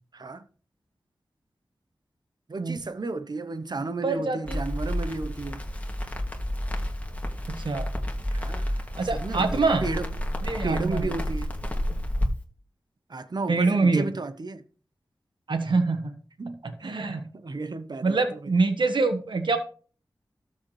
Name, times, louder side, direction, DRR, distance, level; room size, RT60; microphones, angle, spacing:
voice 1, 0.1-0.5 2.5-5.6 8.3-8.8 9.1-10.1 10.6-11.5 13.1-14.6 16.4-18.5, right 3 dB, 60° right, 0.9 m, -33 dB
voice 2, 4.0-4.6 7.5-7.9 9.0-9.8 10.4-11.2 13.5-14.1 15.5-16.1 16.6-17.2 18.0-19.6, right 3 dB, 80° right, 1.4 m, -25 dB
Crackle, 4.4-12.3, equal, 20° left, 2.3 m, -30 dB
13.0 x 7.2 x 3.2 m
cardioid pair, 40°, 8 cm